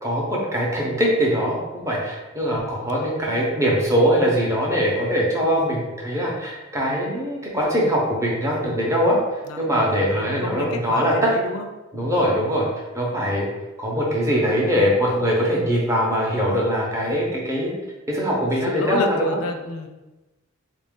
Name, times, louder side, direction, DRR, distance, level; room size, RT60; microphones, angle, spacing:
voice 1, 0.0-11.1 11.9-12.7 12.9-13.5 13.8-17.7 18.1-19.4, equal, 15° right, -4 dB, 0.8 m, -22 dB
voice 2, 9.5-11.7 11.9-12.1 18.7-19.9, left 3 dB, 90° left, 4 dB, 0.5 m, -31 dB
4.0 x 2.5 x 3.6 m, 1.1 s
head